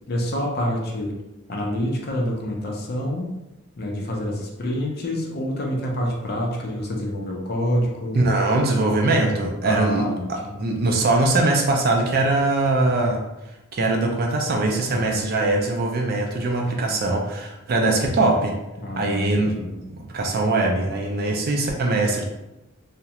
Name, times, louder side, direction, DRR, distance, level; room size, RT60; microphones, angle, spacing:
voice 1, 0.1-1.2 1.5-3.3 3.8-8.2 9.6-10.7 14.9-15.3 18.8-19.8, equal, 45° left, -1 dB, 0.4 m, -27 dB
voice 2, 8.1-10.0 10.6-13.2 13.7-18.5 19.0-19.5 19.9-22.2, right 2 dB, 45° right, 1 dB, 0.3 m, -21 dB
2.3 x 2.0 x 2.8 m, 0.98 s
head